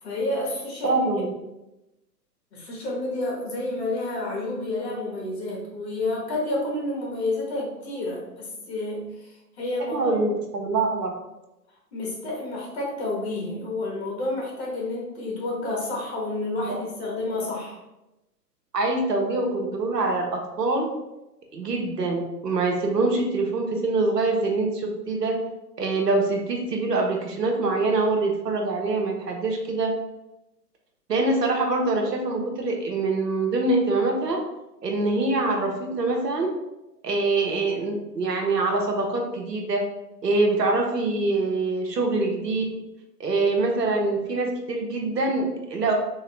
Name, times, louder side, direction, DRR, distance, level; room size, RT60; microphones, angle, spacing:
voice 1, 0.0-1.0 2.5-10.2 11.9-17.8, left 2 dB, 40° left, -3 dB, 1.4 m, -30 dB
voice 2, 0.8-1.3 9.9-11.1 16.7-16.8 18.7-20.9 21.5-25.4 25.8-29.9 31.1-34.4 34.8-36.5 37.0-39.8 40.2-42.6 43.2-45.9, right 3 dB, 70° right, 1 dB, 1.0 m, -24 dB
3.8 x 2.8 x 3.3 m, 0.96 s
figure-of-eight pair, 135°, 50 cm